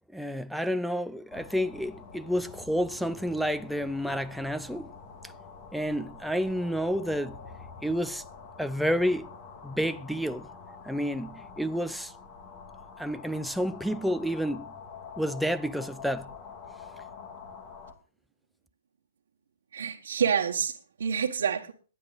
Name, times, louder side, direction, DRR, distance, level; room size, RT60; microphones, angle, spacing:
voice 1, 0.1-4.9 5.7-7.4 7.8-8.2 8.6-9.3 9.6-10.5 10.8-12.1 13.0-14.6 15.2-16.3, equal, ahead, 0.5 m, -30 dB
sound 1, 1.3-17.9, left 5 dB, 35° left, 2.0 m, -46 dB
voice 2, 19.7-21.7, right 7 dB, 80° right, 1.4 m, -28 dB
22.5 x 10.0 x 2.5 m
hypercardioid pair, 150°, 0 cm